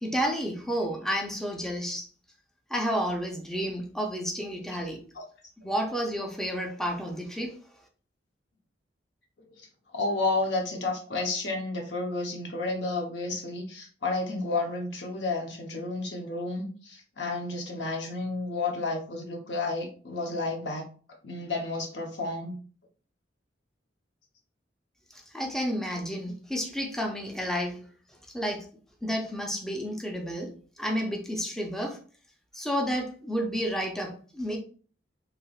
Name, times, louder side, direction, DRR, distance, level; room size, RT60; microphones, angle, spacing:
voice 1, 0.0-2.1 2.7-5.0 5.6-7.6 25.1-27.9 28.3-28.7 29.0-32.0 32.5-34.6, equal, 5° left, 0.4 m, -31 dB
voice 2, 9.9-20.8 21.2-22.6, left 3 dB, 70° left, 0.8 m, -31 dB
3.3 x 2.9 x 2.3 m
head